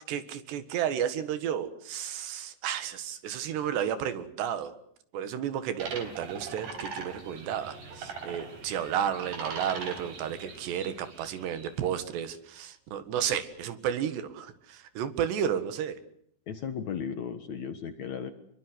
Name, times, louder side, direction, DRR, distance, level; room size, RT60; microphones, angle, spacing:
voice 1, 0.1-4.7 5.1-16.0, right 9 dB, 85° right, 12 dB, 3.9 m, -32 dB
sound 1, 5.8-11.9, right 4 dB, 60° right, 5.7 m, -41 dB
voice 2, 16.5-18.3, left 7 dB, 55° left, 9 dB, 2.2 m, -35 dB
26.5 x 22.5 x 8.1 m, 0.68 s
omnidirectional pair, 4.8 m